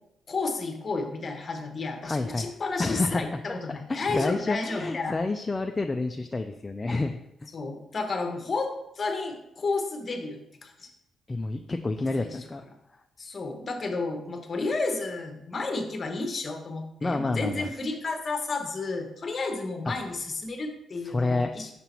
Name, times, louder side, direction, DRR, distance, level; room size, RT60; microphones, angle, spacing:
voice 1, 0.3-5.2 7.5-10.9 12.0-12.4 13.2-21.7, left 3 dB, 35° left, 5 dB, 0.9 m, -32 dB
voice 2, 2.0-2.5 2.8-3.6 3.9-7.2 11.3-12.6 17.0-17.7 19.9-20.0 21.0-21.5, left 2 dB, 20° left, 5 dB, 0.3 m, -29 dB
5.9 x 5.4 x 3.0 m, 0.84 s
cardioid pair, 115°, 0 cm